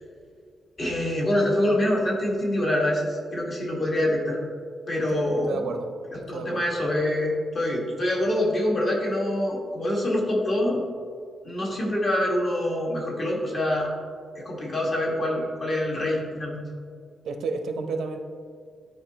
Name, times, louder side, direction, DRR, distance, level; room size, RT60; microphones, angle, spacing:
voice 1, 0.8-4.4 4.9-5.7 6.3-10.8 11.4-13.9 14.3-16.6, left 1 dB, 35° left, -3 dB, 1.4 m, -25 dB
voice 2, 5.5-5.9 6.3-6.6 17.2-18.2, right 4 dB, 85° right, 6 dB, 0.6 m, -31 dB
11.0 x 4.7 x 2.9 m, 2.1 s
wide cardioid pair, 175°, 0 cm